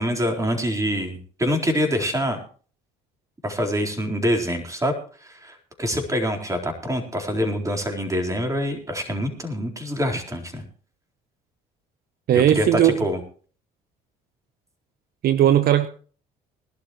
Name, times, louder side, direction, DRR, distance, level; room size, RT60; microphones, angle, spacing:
voice 1, 0.0-2.4 3.4-4.9 5.2-10.6 12.3-13.2, equal, 15° right, 3 dB, 4.1 m, -25 dB
voice 2, 12.3-13.0 15.2-15.9, right 11 dB, 60° right, 12 dB, 0.8 m, -17 dB
20.5 x 12.0 x 3.1 m, 0.41 s
supercardioid pair, 70°, 18 cm